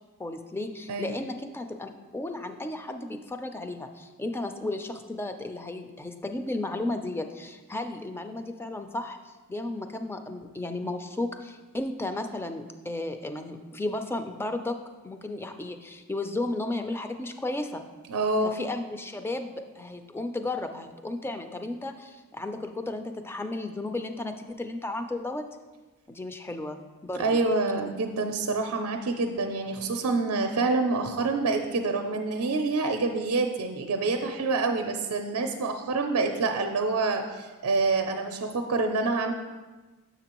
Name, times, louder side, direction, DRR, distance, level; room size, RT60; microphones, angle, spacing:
voice 1, 0.2-14.8 15.0-17.8 18.4-25.4 26.1-27.4, left 2 dB, 10° left, 7 dB, 0.3 m, -34 dB
voice 2, 18.1-18.6 27.2-39.3, right 3 dB, 75° right, 4 dB, 0.5 m, -27 dB
7.4 x 5.9 x 2.9 m, 1.3 s
head